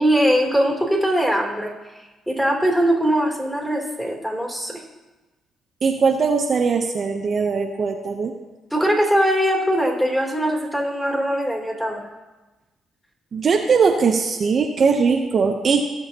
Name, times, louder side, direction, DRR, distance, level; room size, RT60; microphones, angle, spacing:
voice 1, 0.0-1.7 2.3-4.8 8.7-12.0, equal, 5° left, -1 dB, 3.1 m, -21 dB
voice 2, 5.8-8.3 13.3-15.9, right 5 dB, 50° right, 4 dB, 0.8 m, -20 dB
16.0 x 6.4 x 2.9 m, 1.1 s
supercardioid pair, 55°, 0 cm